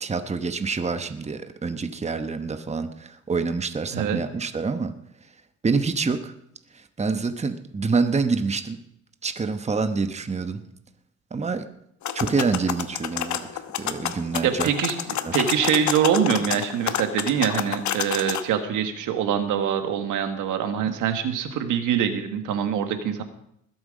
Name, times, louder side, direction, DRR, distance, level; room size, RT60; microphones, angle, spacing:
voice 1, 0.0-4.9 5.6-6.3 6.7-8.8 9.2-10.6 11.3-11.7 12.1-14.7 15.2-15.5 20.9-21.0, right 4 dB, 20° right, 9 dB, 1.0 m, -27 dB
sound 1, 12.0-18.4, left 10 dB, 70° left, 1.1 m, -29 dB
voice 2, 14.4-15.0 15.3-23.2, right 8 dB, 85° right, 8 dB, 1.5 m, -24 dB
20.0 x 7.9 x 5.2 m, 0.75 s
cardioid pair, 90°, 30 cm